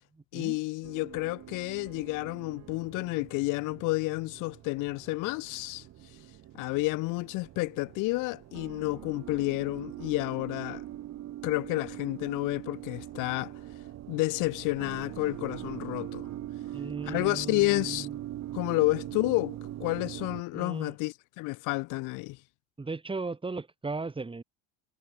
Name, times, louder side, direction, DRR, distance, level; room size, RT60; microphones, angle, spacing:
voice 1, 0.3-5.9 6.5-10.8 11.4-13.5 14.1-16.3 17.0-18.1 18.5-22.4, left 24 dB, 60° left, 1.5 m, -30 dB
sound 1, 0.8-20.4, right 13 dB, 50° right, 4.5 m, -42 dB
voice 2, 16.7-18.1 20.5-20.9 22.8-24.4, right 3 dB, 15° right, 4.2 m, -37 dB
supercardioid pair, 95°, 35 cm